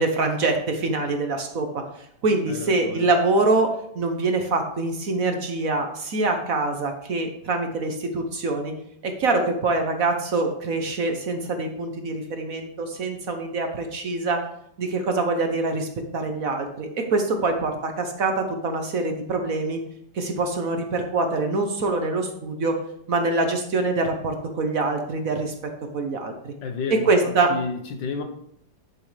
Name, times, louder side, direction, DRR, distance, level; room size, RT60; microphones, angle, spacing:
voice 1, 0.0-1.8 2.2-8.7 9.0-14.4 14.8-19.8 20.1-22.8 23.1-25.5 25.9-26.5 27.1-27.5, right 3 dB, 55° right, 5 dB, 1.2 m, -24 dB
voice 2, 2.5-3.1 26.6-28.2, left 5 dB, 75° left, 6 dB, 1.7 m, -31 dB
11.0 x 7.4 x 3.3 m, 0.71 s
omnidirectional pair, 2.0 m